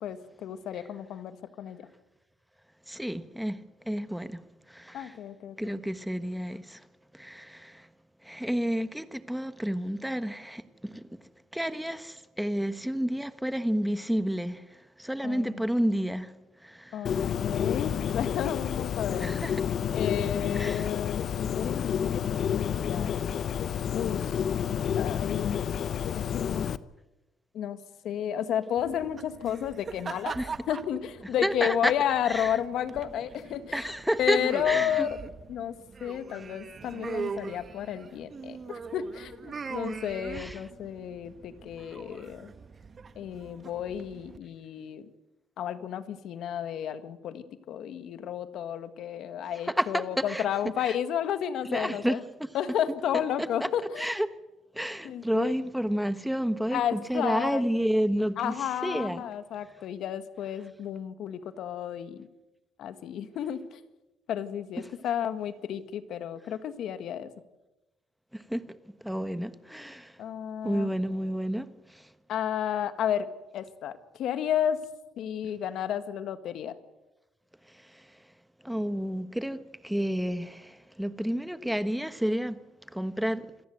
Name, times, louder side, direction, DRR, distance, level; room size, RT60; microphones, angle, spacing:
voice 1, 0.0-1.9 4.9-5.8 15.2-15.6 16.9-19.3 19.9-23.3 23.9-24.4 25.0-25.6 26.3-26.7 27.5-27.8 28.0-30.3 30.7-33.9 34.2-35.1 35.5-35.7 36.0-42.5 43.2-45.1 45.6-52.2 52.5-54.1 55.0-55.5 56.7-57.6 58.4-62.3 62.8-63.8 64.3-67.3 70.2-70.9 72.3-73.3 73.5-74.8 75.2-76.7, left 9 dB, 70° left, 1.7 m, -32 dB
voice 2, 2.9-3.6 3.9-4.4 4.7-5.1 5.6-6.8 7.1-7.9 8.2-11.0 11.5-14.6 15.0-16.3 16.6-17.3 19.2-19.6 20.5-20.9 30.3-30.5 31.4-31.9 32.2-32.6 33.7-34.4 34.7-35.1 39.8-39.9 40.3-40.6 49.7-50.4 50.9-51.0 51.6-52.2 53.4-53.7 54.0-54.3 54.7-58.5 58.8-59.2 68.3-68.6 69.0-70.1 70.6-72.0 78.6-82.6 82.9-83.5, equal, ahead, 1.3 m, -30 dB
Bird, 17.1-26.8, left 8 dB, 55° left, 0.8 m, -29 dB
sound 1, 28.8-44.4, right 5 dB, 35° right, 1.4 m, -42 dB
26.5 x 14.5 x 7.9 m
cardioid pair, 100°, 0 cm